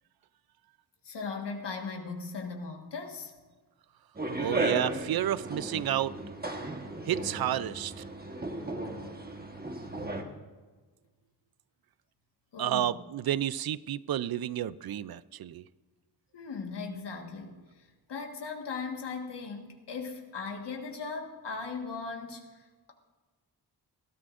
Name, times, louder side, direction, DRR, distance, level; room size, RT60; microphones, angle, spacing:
voice 1, 1.0-3.3 6.6-6.7 12.5-12.9 16.3-22.9, left 4 dB, 80° left, 2 dB, 1.7 m, -38 dB
sound 1, 4.2-10.2, right 2 dB, 25° right, 1.3 m, -35 dB
voice 2, 4.4-6.1 7.1-8.0 12.6-15.6, right 11 dB, 65° right, 18 dB, 0.5 m, -31 dB
20.5 x 13.0 x 2.6 m, 1.3 s
wide cardioid pair, 100°, 41 cm